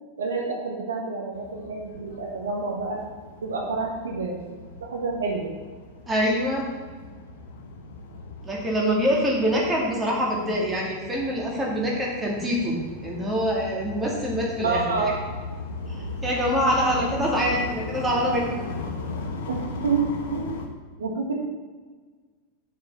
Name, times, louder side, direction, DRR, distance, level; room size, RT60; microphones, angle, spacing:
voice 1, 0.2-3.0 3.4-4.4 4.8-5.5 14.6-15.1 19.5-20.0 20.3-20.5 21.0-21.3, right 4 dB, 65° right, -1 dB, 1.4 m, -28 dB
sound 1, 1.3-20.7, left 2 dB, 55° left, 1.1 m, -37 dB
voice 2, 6.1-6.7 8.4-12.8 13.0-15.1 15.9-18.6, equal, 10° right, -3 dB, 2.4 m, -25 dB
6.7 x 5.5 x 6.9 m, 1.4 s
figure-of-eight pair, 90°, 0 cm